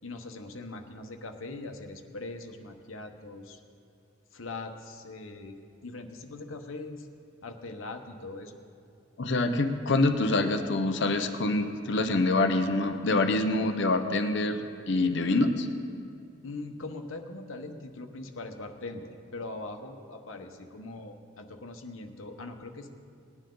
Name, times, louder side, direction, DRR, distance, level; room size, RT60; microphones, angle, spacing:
voice 1, 0.0-3.6 4.3-5.6 5.8-7.1 7.4-8.6 16.4-23.0, left 2 dB, 80° left, 5 dB, 1.1 m, -41 dB
voice 2, 9.2-14.6 14.9-15.7, left 2 dB, 60° left, 7 dB, 0.7 m, -25 dB
19.5 x 9.9 x 3.9 m, 2.5 s
head